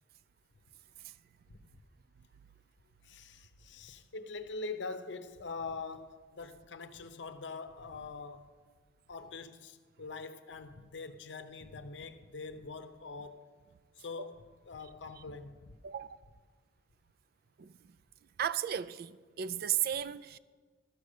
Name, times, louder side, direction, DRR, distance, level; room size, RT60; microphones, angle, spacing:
voice 1, 3.0-8.5 9.1-13.5 14.0-15.8, left 4 dB, 70° left, 0.7 m, -44 dB
voice 2, 17.6-17.9 18.4-20.4, right 10 dB, 55° right, 0.3 m, -35 dB
13.0 x 6.3 x 6.6 m
head